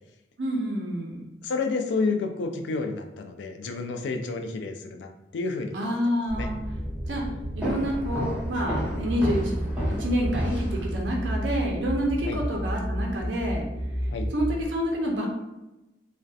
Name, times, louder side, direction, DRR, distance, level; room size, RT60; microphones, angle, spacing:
voice 1, 0.4-1.2 5.7-6.6 7.1-7.2 7.5-9.6 9.9-13.6 14.3-15.3, equal, 70° right, -1 dB, 0.5 m, -28 dB
voice 2, 1.4-5.9 6.3-6.5 12.3-12.4 14.1-14.3, left 3 dB, 70° left, 5 dB, 0.3 m, -30 dB
sound 1, 6.3-14.6, equal, 45° right, 1.1 m, -32 dB
sound 2, 7.6-11.3, equal, 5° right, 0.8 m, -32 dB
2.6 x 2.1 x 2.3 m, 0.98 s
head